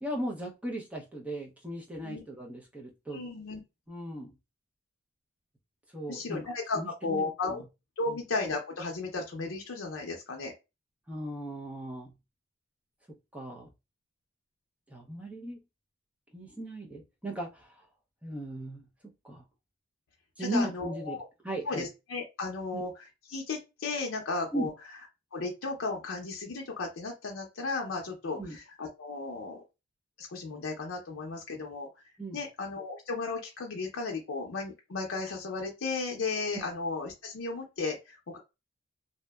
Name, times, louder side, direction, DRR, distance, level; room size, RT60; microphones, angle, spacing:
voice 1, 0.0-3.2 3.9-4.3 5.9-6.4 6.8-7.6 8.1-8.2 11.1-12.1 13.3-13.7 14.9-15.6 16.3-17.7 18.2-19.4 20.4-21.2 21.4-21.9 22.7-22.9 24.5-24.7 28.4-28.6 32.2-32.4, right 1 dB, 5° right, 1 dB, 0.5 m, -37 dB
voice 2, 3.1-3.6 6.1-7.6 8.0-10.5 20.4-21.2 21.7-24.7 25.3-29.6 30.2-31.9 32.3-38.4, left 3 dB, 80° left, 0 dB, 0.5 m, -35 dB
2.7 x 2.1 x 2.2 m, 0.25 s
head